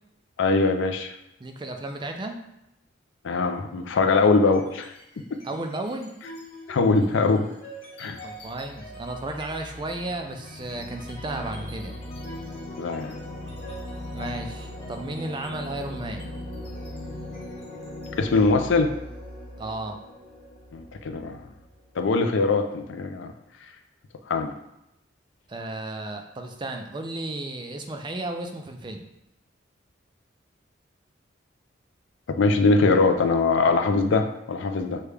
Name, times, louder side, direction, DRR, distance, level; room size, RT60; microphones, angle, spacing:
voice 1, 0.4-1.1 3.2-4.9 5.3-5.4 6.7-7.5 8.0-8.2 12.8-13.2 18.2-18.9 20.7-21.4 22.0-23.3 24.3-24.5 32.3-35.0, left 3 dB, 70° left, 7 dB, 0.4 m, -22 dB
voice 2, 1.4-2.4 5.4-6.1 8.2-12.0 14.1-16.3 19.6-20.0 25.5-29.0, right 2 dB, 25° right, 4 dB, 0.3 m, -34 dB
sound 1, 4.4-5.0 5.3-21.9, left 1 dB, 30° left, 1.0 m, -39 dB
6.3 x 2.2 x 3.3 m, 0.84 s
head